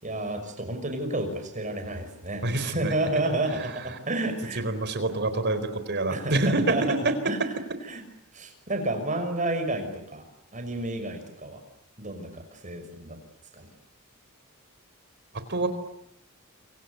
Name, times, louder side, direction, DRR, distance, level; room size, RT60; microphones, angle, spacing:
voice 1, 0.0-4.6 6.1-7.0 7.3-7.4 7.9-8.0 8.3-10.2 10.5-11.6 12.0-13.2 13.5-13.7, right 2 dB, 35° right, 7 dB, 5.9 m, -30 dB
voice 2, 2.4-2.9 4.6-7.1 15.3-15.7, right 2 dB, 50° right, 11 dB, 4.1 m, -26 dB
27.5 x 26.0 x 8.1 m, 0.74 s
head